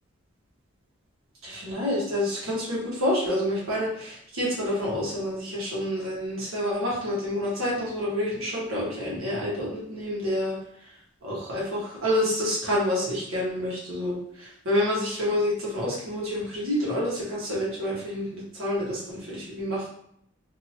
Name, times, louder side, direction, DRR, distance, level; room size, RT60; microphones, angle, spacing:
voice 1, 1.4-10.6 11.2-19.8, left 1 dB, 85° right, -6 dB, 1.4 m, -28 dB
2.9 x 2.7 x 2.7 m, 0.70 s
head